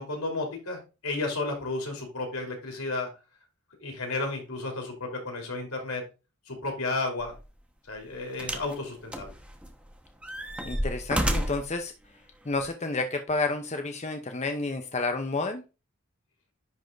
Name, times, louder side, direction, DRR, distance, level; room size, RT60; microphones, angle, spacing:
voice 1, 0.0-3.1 3.8-6.0 6.5-7.4 7.9-9.3, left 2 dB, 80° left, 2 dB, 2.9 m, -32 dB
sound 1, 7.2-7.4 8.4-8.8 9.1-9.8 10.2-11.7 12.6-12.7, equal, 5° right, 0.8 m, -30 dB
voice 2, 10.7-11.9 12.4-15.6, left 3 dB, 30° left, 5 dB, 0.7 m, -30 dB
10.5 x 3.5 x 3.8 m, 0.29 s
head